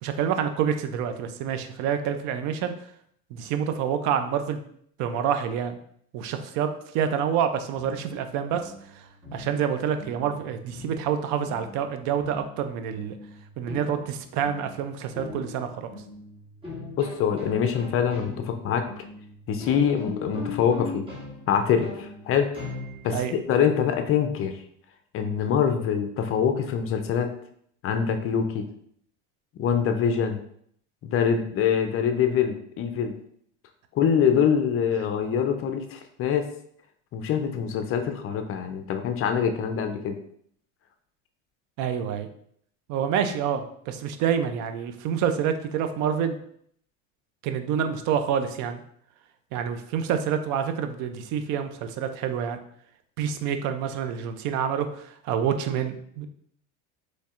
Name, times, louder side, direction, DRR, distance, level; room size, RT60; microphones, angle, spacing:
voice 1, 0.0-2.7 3.3-4.6 5.0-5.8 6.1-13.2 13.6-15.9 23.1-23.3 41.8-42.3 42.9-46.4 47.4-48.8 49.5-52.6 53.2-56.3, right 8 dB, 60° right, 8 dB, 0.5 m, -27 dB
sound 1, 7.7-23.4, left 3 dB, 15° right, 1.1 m, -41 dB
voice 2, 17.0-19.0 19.5-21.1 21.5-22.5 23.0-24.6 25.1-27.3 27.8-28.6 29.6-30.4 31.0-33.2 34.0-36.5 37.1-40.2, left 7 dB, 40° left, 6 dB, 0.5 m, -24 dB
4.2 x 3.1 x 2.4 m, 0.66 s
supercardioid pair, 120°, 34 cm